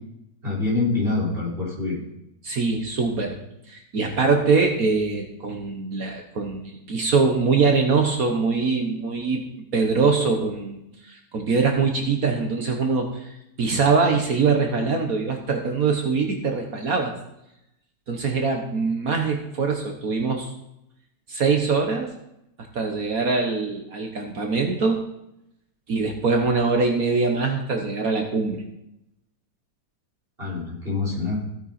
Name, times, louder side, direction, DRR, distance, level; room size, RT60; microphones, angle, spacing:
voice 1, 0.4-2.0 30.4-31.4, left 3 dB, 30° right, -6 dB, 5.4 m, -25 dB
voice 2, 2.4-3.4 3.7-9.4 9.7-17.1 18.1-20.5 21.3-22.1 22.7-25.0 25.9-28.6, right 4 dB, 60° right, 3 dB, 1.6 m, -23 dB
15.5 x 9.0 x 4.3 m, 0.82 s
omnidirectional pair, 1.8 m